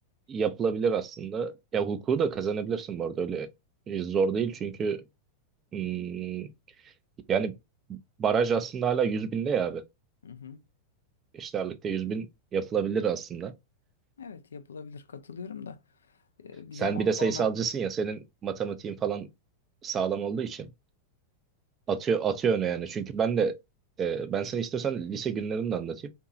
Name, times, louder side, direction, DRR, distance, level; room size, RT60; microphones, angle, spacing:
voice 1, 0.3-3.5 3.9-5.0 5.7-6.5 7.3-7.5 7.9-9.8 11.3-12.3 12.5-13.5 16.7-19.3 19.8-20.7 21.9-23.6 24.0-26.1, right 6 dB, 25° right, 0.5 m, -28 dB
voice 2, 10.2-10.6 14.2-15.8 16.4-17.5, left 6 dB, 70° left, 0.3 m, -41 dB
2.7 x 2.6 x 2.3 m
figure-of-eight pair, 90°, 0 cm